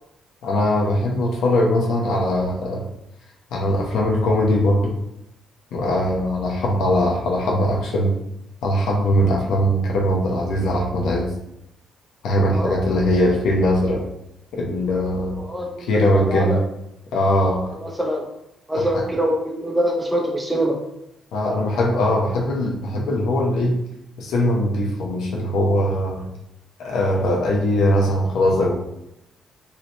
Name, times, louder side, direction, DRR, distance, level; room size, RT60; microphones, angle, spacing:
voice 1, 0.4-2.8 3.5-4.9 5.7-8.1 8.6-11.3 12.2-14.0 14.5-15.4 15.9-16.6 17.1-17.6 18.8-18.9 21.3-23.8 24.2-26.2 26.8-28.7, left 1 dB, 80° left, -2 dB, 0.7 m, -20 dB
voice 2, 15.1-16.6 17.6-18.3 18.7-20.8, equal, 5° right, 0 dB, 0.5 m, -24 dB
3.2 x 2.8 x 2.9 m, 0.83 s
cardioid pair, 90°, 0 cm